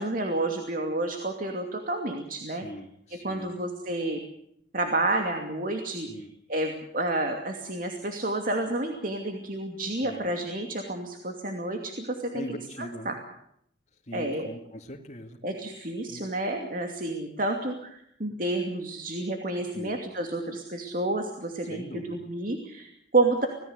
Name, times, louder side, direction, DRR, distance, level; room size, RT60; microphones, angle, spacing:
voice 1, 0.0-2.6 3.1-4.2 4.7-6.1 6.5-13.2 14.1-14.5 15.4-23.5, right 2 dB, 45° right, 3 dB, 2.6 m, -30 dB
voice 2, 2.5-3.5 5.9-6.3 10.0-10.3 12.3-13.2 14.1-15.4 16.1-16.2 19.7-20.0 21.7-22.3, equal, 40° left, 2 dB, 2.3 m, -41 dB
26.5 x 18.0 x 8.1 m, 0.74 s
head